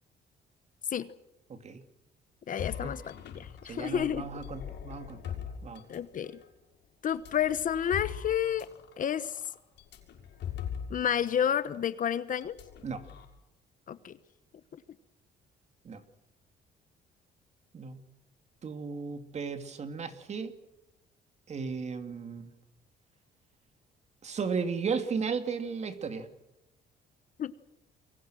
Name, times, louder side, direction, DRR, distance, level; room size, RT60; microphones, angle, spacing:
voice 1, 1.5-1.8 2.8-2.9 3.6-5.2 5.6-5.8 12.8-13.0 15.8-16.0 17.7-18.0 18.6-20.5 21.5-22.5 24.2-26.3, right 5 dB, 40° right, 8 dB, 2.6 m, -35 dB
voice 2, 2.5-4.3 5.9-6.4 7.0-8.7 9.0-9.4 10.9-12.6 13.9-14.2 27.4-27.7, left 9 dB, 45° left, 14 dB, 1.1 m, -30 dB
sound 1, 2.6-6.5 7.1-11.3 11.6-11.8 12.4-13.3, left 8 dB, 75° left, 6.0 m, -42 dB
29.0 x 23.5 x 6.4 m, 0.87 s
cardioid pair, 135°, 18 cm